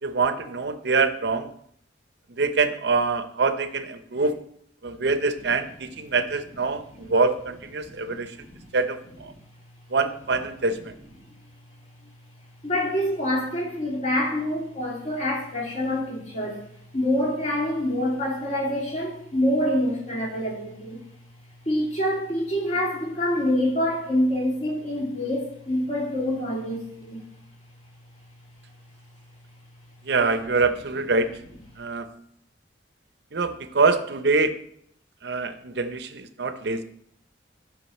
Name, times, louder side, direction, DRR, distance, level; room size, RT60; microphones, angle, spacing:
voice 1, 0.0-1.5 2.3-4.4 4.8-8.4 8.7-9.3 9.9-10.9 30.0-31.4 31.8-32.1 33.3-34.6 35.2-36.8, right 4 dB, 65° right, 10 dB, 0.7 m, -25 dB
voice 2, 7.8-8.6 12.6-16.7 16.9-21.0 21.7-27.2, left 1 dB, 40° left, -3 dB, 2.7 m, -26 dB
11.0 x 5.3 x 4.2 m, 0.69 s
head